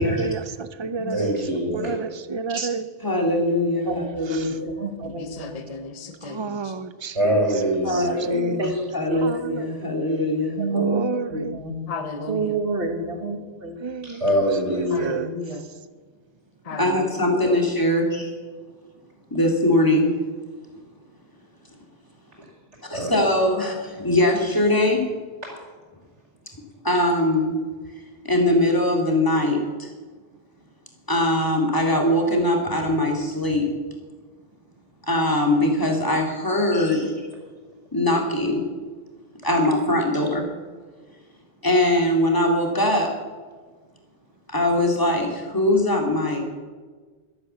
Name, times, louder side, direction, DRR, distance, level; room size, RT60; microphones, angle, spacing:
voice 1, 0.0-1.3 1.7-2.9 4.3-4.6 6.2-7.5 7.9-8.6 9.2-9.7 10.7-11.6 13.8-14.2 14.7-15.3 17.4-17.6, right 5 dB, 30° right, 13 dB, 0.6 m, -30 dB
voice 2, 1.1-2.0 7.1-8.2 8.7-8.8 14.0-15.1 18.1-18.2 22.9-23.1 25.5-25.6 36.7-37.1, equal, 80° right, -4 dB, 5.7 m, -24 dB
voice 3, 3.0-4.7 7.8-10.6 16.8-18.1 19.3-20.1 22.9-25.0 26.8-27.5 28.2-29.9 31.1-33.7 35.1-37.1 37.9-38.6 39.4-40.5 41.6-43.1 44.5-46.4, left 1 dB, 20° left, 1 dB, 2.4 m, -21 dB
voice 4, 3.9-4.5 4.7-5.6 8.6-8.8 9.1-9.3 10.6-11.8 12.3-13.8, right 2 dB, 55° right, 5 dB, 1.8 m, -28 dB
voice 5, 5.0-6.7 11.9-12.6 14.9-15.6 16.6-17.2, left 3 dB, 35° left, 7 dB, 1.1 m, -35 dB
12.5 x 11.5 x 6.9 m, 1.4 s
omnidirectional pair, 1.2 m